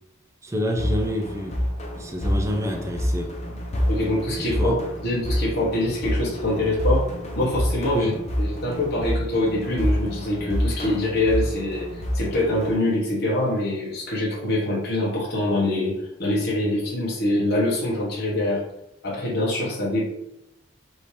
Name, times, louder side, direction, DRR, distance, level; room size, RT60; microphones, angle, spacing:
voice 1, 0.4-1.6 2.0-3.3 4.6-4.7 7.9-8.1, equal, 15° right, 2 dB, 0.5 m, -27 dB
sound 1, 0.8-12.8, equal, 35° left, 0.7 m, -27 dB
voice 2, 3.9-4.8 5.0-7.1 7.4-8.1 8.4-18.6 19.0-20.1, left 1 dB, 55° left, -5 dB, 1.2 m, -24 dB
5.2 x 2.8 x 3.3 m, 0.84 s
head